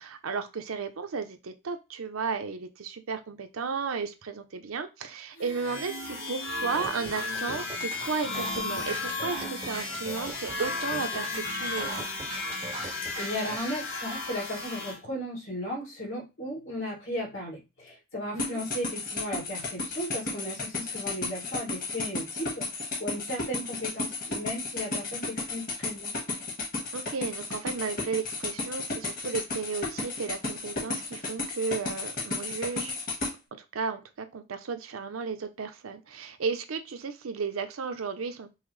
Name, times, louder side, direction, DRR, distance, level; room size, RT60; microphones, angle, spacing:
voice 1, 0.0-12.0 18.3-18.6 26.9-33.0 33.7-38.5, right 5 dB, 90° right, 8 dB, 0.6 m, -34 dB
sound 1, 5.4-15.0, left 3 dB, 60° left, 1.0 m, -34 dB
sound 2, 6.7-13.6, right 3 dB, 25° right, 0.5 m, -40 dB
voice 2, 13.2-22.7 23.0-26.1, equal, 75° left, -3 dB, 2.1 m, -35 dB
sound 3, 18.4-33.3, left 3 dB, 45° left, 1.3 m, -33 dB
5.5 x 2.1 x 3.1 m, 0.26 s
head